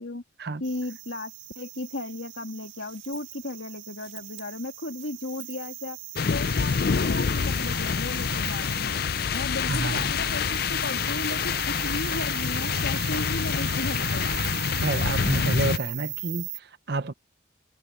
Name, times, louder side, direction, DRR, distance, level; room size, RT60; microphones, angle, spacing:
voice 1, 0.6-6.0 6.3-9.0 9.3-14.3, left 2 dB, 80° left, 2.5 m, -35 dB
sound 1, 0.6-16.6, right 17 dB, 75° right, 1.7 m, -39 dB
sound 2, 6.2-15.8, left 6 dB, 50° left, 0.4 m, -27 dB
voice 2, 9.7-10.1 14.8-17.1, right 3 dB, 55° right, 0.8 m, -29 dB
head